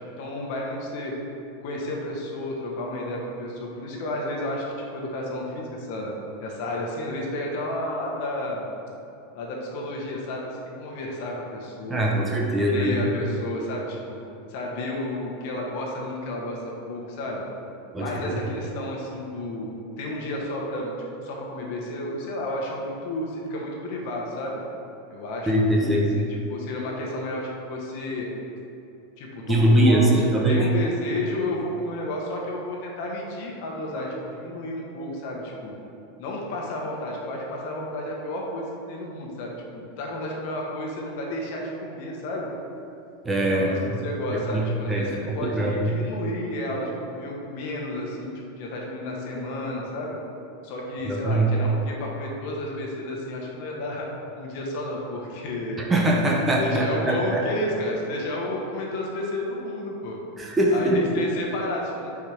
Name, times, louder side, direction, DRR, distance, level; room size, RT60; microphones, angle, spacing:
voice 1, 0.2-1.1 1.6-4.6 4.9-6.1 6.4-8.7 9.3-12.0 12.3-14.2 14.5-17.4 18.0-19.7 20.0-20.9 21.2-24.6 25.1-26.0 26.5-28.3 29.2-35.7 36.2-42.5 43.5-50.2 50.6-54.1 54.3-55.8 56.6-60.1 60.7-62.1, left 1 dB, 55° left, -2 dB, 1.1 m, -32 dB
voice 2, 11.9-12.9 17.9-18.4 25.5-26.1 29.5-30.6 43.2-43.7 44.5-45.0 45.3-45.9 51.1-51.5 55.9-57.4 60.4-61.2, right 1 dB, 10° right, -2 dB, 0.6 m, -22 dB
4.8 x 4.4 x 4.9 m, 2.8 s
supercardioid pair, 150°, 0 cm